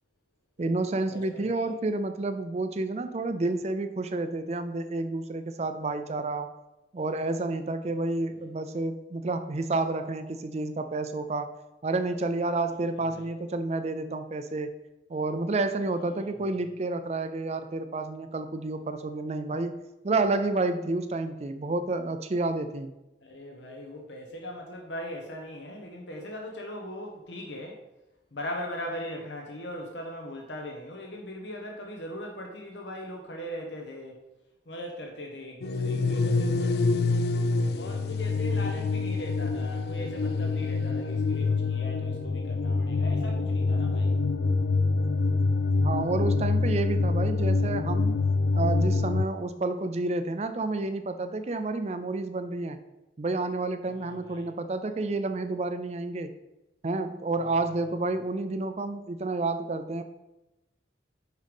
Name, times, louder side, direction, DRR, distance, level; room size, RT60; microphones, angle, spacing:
voice 1, 0.6-6.5 6.9-11.5 11.8-14.7 15.1-19.8 20.0-22.9 45.8-48.1 48.6-52.8 53.2-56.3 56.8-60.0, right 2 dB, 35° right, 9 dB, 0.4 m, -30 dB
voice 2, 1.1-1.6 12.7-12.8 13.1-13.3 16.0-16.4 23.2-27.8 28.3-34.2 34.7-37.2 37.7-44.1 53.8-54.5 57.4-57.8, left 1 dB, 75° left, 2 dB, 1.0 m, -40 dB
sound 1, 35.6-49.2, left 3 dB, 60° left, 0.4 m, -26 dB
6.4 x 5.1 x 5.2 m, 0.97 s
head